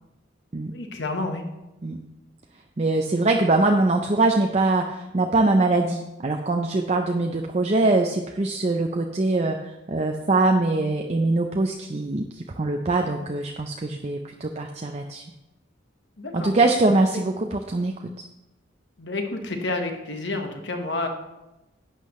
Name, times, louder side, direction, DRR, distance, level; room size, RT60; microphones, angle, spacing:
voice 1, 0.7-1.4 16.2-16.5 17.1-17.2 19.0-21.1, left 2 dB, 60° left, 4 dB, 1.3 m, -29 dB
voice 2, 2.8-15.2 16.3-18.2, right 2 dB, 35° right, 3 dB, 0.5 m, -23 dB
11.0 x 8.3 x 3.1 m, 0.97 s
head